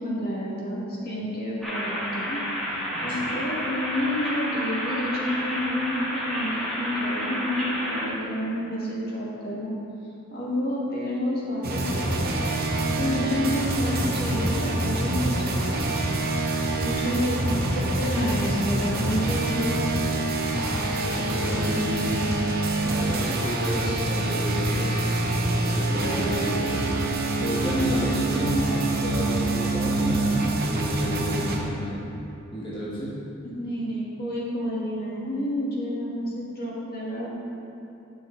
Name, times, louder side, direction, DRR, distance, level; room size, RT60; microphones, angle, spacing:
voice 1, 0.0-2.4 3.0-9.7 10.3-12.3 13.0-15.9 16.7-17.4 17.7-20.1 33.4-37.3, left 1 dB, 50° left, -6 dB, 1.9 m, -29 dB
sound 1, 1.6-8.1, equal, ahead, 1.9 m, -30 dB
voice 2, 2.9-3.2 16.8-17.0 20.9-22.2 22.8-26.8 27.4-32.0 32.5-33.2, equal, 25° left, -9 dB, 1.6 m, -30 dB
sound 2, 11.6-31.6, right 2 dB, 50° right, 0.9 m, -26 dB
10.0 x 6.1 x 3.9 m, 2.9 s
head